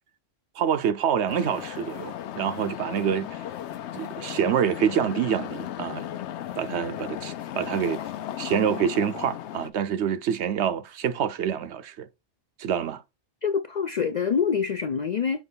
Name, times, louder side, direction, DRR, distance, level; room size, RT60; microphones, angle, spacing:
voice 1, 0.6-3.4 3.9-6.1 6.6-8.0 8.4-12.1 12.6-13.0, right 8 dB, 70° right, 0.9 m, -26 dB
sound 1, 1.3-9.7, left 11 dB, 75° left, 0.9 m, -36 dB
voice 2, 13.4-15.4, left 6 dB, 60° left, 0.4 m, -25 dB
6.1 x 3.1 x 5.5 m
omnidirectional pair, 1.2 m